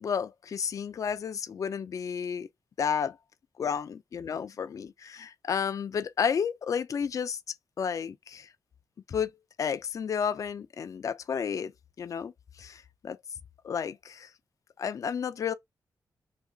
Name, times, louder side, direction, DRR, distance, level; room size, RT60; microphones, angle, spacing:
voice 1, 0.0-2.5 2.8-3.2 3.6-7.4 7.8-8.5 9.1-9.3 9.6-11.7 12.0-12.3 12.6-13.2 13.6-14.3 14.8-15.5, left 7 dB, 50° left, 0.3 m, -31 dB
2.9 x 2.4 x 3.7 m
wide cardioid pair, 110°, 7 cm